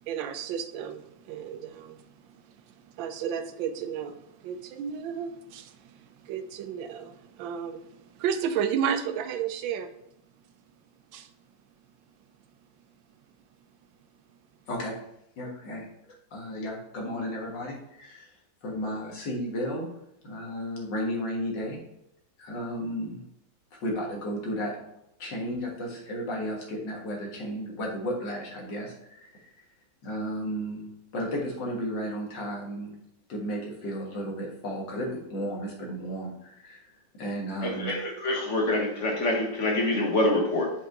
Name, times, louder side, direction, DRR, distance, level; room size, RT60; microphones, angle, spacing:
voice 1, 0.0-2.0 2.3-2.4 2.9-9.9 11.1-11.3 15.4-15.5, right 8 dB, 80° right, 9 dB, 1.4 m, -33 dB
voice 2, 14.7-15.0 15.4-15.9 16.3-18.4 18.6-19.9 20.2-21.8 22.4-23.2 23.7-24.8 25.2-29.6 30.0-30.9 31.1-32.9 33.3-36.9 37.2-37.9, equal, 70° left, -2 dB, 2.2 m, -33 dB
voice 3, 37.6-38.0 38.2-40.7, left 2 dB, 45° left, 1 dB, 1.3 m, -25 dB
5.7 x 5.2 x 3.8 m, 0.80 s
omnidirectional pair, 2.1 m